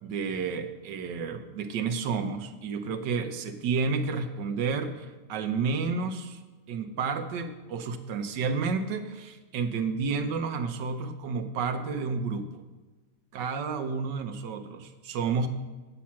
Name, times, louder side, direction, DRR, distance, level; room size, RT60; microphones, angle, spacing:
voice 1, 0.0-6.4 6.7-12.6 13.3-15.5, right 5 dB, 90° right, 7 dB, 1.5 m, -31 dB
9.6 x 5.8 x 7.3 m, 1.2 s
omnidirectional pair, 1.8 m